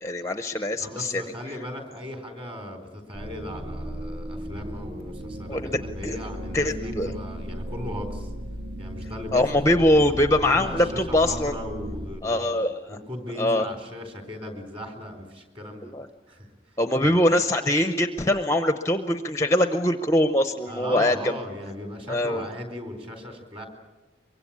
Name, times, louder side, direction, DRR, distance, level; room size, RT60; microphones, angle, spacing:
voice 1, 0.0-1.2 5.5-6.2 6.5-7.1 9.3-11.6 12.2-13.0 13.4-13.6 15.8-16.1 16.8-21.4 22.1-22.4, left 1 dB, 15° left, 8 dB, 0.7 m, -23 dB
voice 2, 0.8-8.3 8.8-9.5 9.8-9.9 10.4-12.6 12.9-15.9 16.3-17.2 20.7-23.7, left 1 dB, 30° right, 5 dB, 3.9 m, -37 dB
sound 1, 3.1-12.1, equal, 45° right, 2.3 m, -36 dB
24.0 x 23.5 x 8.6 m, 1.2 s
head